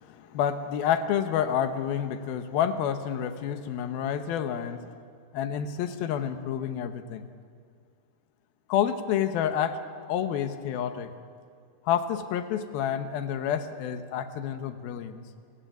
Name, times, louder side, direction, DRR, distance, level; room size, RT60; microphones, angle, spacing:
voice 1, 0.0-4.9 5.3-7.3 8.7-9.8 10.1-11.1 11.9-15.2, left 9 dB, 90° left, 9 dB, 3.0 m, -29 dB
28.5 x 15.0 x 9.4 m, 2.2 s
omnidirectional pair, 4.2 m